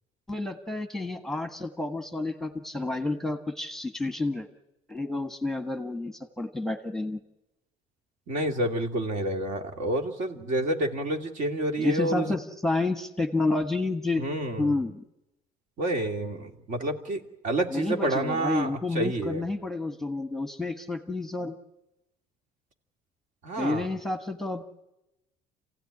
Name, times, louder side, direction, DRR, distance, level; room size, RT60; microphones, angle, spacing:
voice 1, 0.3-4.5 4.9-7.2 11.8-14.2 14.6-15.0 17.7-21.6 23.5-24.6, left 2 dB, 5° left, 7 dB, 1.5 m, -30 dB
voice 2, 8.3-12.3 14.2-14.7 15.8-19.4 23.4-23.9, right 1 dB, 55° right, 5 dB, 2.6 m, -29 dB
27.0 x 16.5 x 9.8 m, 0.94 s
cardioid pair, 120°, 15 cm